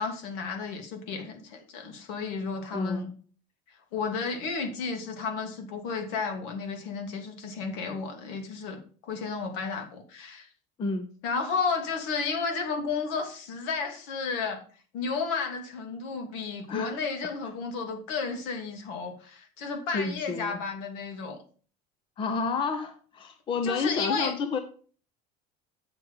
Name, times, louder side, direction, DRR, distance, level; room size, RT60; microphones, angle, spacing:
voice 1, 0.0-3.1 3.9-10.5 11.2-14.6 14.9-21.4 23.6-24.3, left 5 dB, 75° left, 4 dB, 2.7 m, -32 dB
voice 2, 2.7-3.1 10.8-11.1 16.7-17.0 19.9-20.6 22.2-24.6, left 4 dB, 25° left, 7 dB, 0.9 m, -30 dB
8.2 x 6.2 x 5.5 m, 0.41 s
cardioid pair, 170°, 19 cm